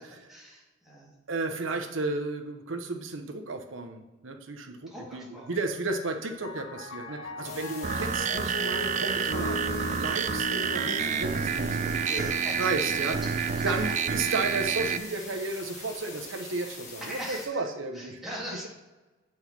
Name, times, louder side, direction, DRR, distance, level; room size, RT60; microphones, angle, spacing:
voice 1, 0.3-1.1 4.9-5.5 12.0-12.6 13.1-13.7 15.2-15.4 17.1-18.7, equal, ahead, -5 dB, 2.2 m, -41 dB
voice 2, 1.3-12.3 12.6-13.2 13.6-18.2, right 3 dB, 75° right, 6 dB, 0.9 m, -33 dB
Piano, 5.4-15.0, left 2 dB, 85° left, 0.9 m, -40 dB
sound 1, 7.4-17.4, left 3 dB, 40° left, 1.8 m, -44 dB
sound 2, 7.8-15.0, right 7 dB, 40° right, 0.3 m, -29 dB
7.9 x 4.3 x 5.9 m, 1.2 s
head